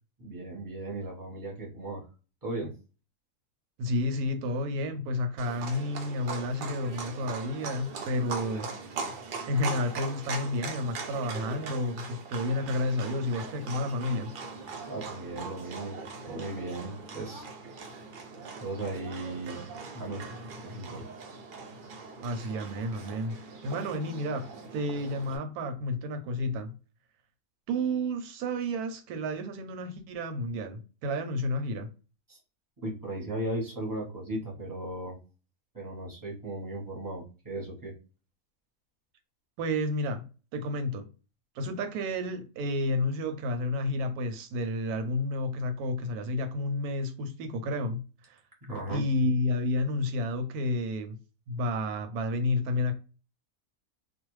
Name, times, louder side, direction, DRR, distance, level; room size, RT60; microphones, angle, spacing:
voice 1, 0.2-2.0 2.4-2.7 14.8-17.4 18.6-19.6 19.9-20.2 20.6-21.0 32.3-32.4 32.8-35.2 35.7-37.9 48.6-49.0, right 1 dB, 15° right, 0.8 m, -36 dB
voice 2, 3.8-8.7 9.5-14.3 22.2-23.4 23.6-26.7 27.7-31.9 39.6-40.2 40.5-41.1 41.6-48.4 48.9-51.2 51.5-52.9, left 1 dB, 85° right, 1.1 m, -31 dB
Livestock farm animals working animals, 5.4-25.4, right 4 dB, 70° right, 0.4 m, -41 dB
2.5 x 2.2 x 3.0 m
omnidirectional pair, 1.6 m